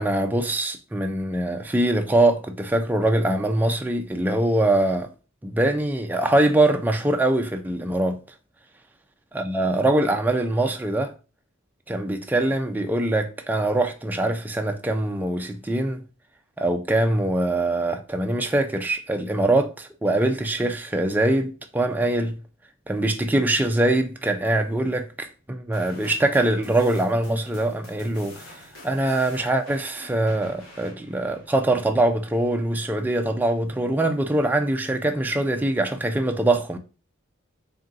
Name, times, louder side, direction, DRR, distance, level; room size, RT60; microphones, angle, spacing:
voice 1, 0.0-5.1 5.4-8.2 9.3-11.1 11.9-16.0 16.6-22.4 22.9-36.8, right 1 dB, 10° right, 0.3 m, -23 dB
sound 1, 25.7-32.3, left 1 dB, 75° left, 1.7 m, -47 dB
4.0 x 3.8 x 2.5 m
head